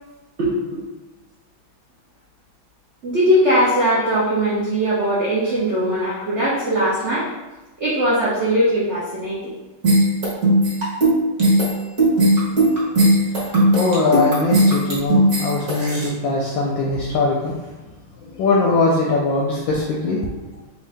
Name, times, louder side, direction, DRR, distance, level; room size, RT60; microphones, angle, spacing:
voice 1, 0.4-0.8 3.0-7.3 7.8-9.4, equal, 75° right, -7 dB, 0.6 m, -20 dB
sound 1, 9.8-16.1, right 1 dB, 40° right, 1.5 m, -17 dB
voice 2, 13.3-17.5 18.2-20.6, left 3 dB, 75° left, -2 dB, 1.2 m, -21 dB
4.6 x 2.6 x 3.3 m, 1.1 s
omnidirectional pair, 2.4 m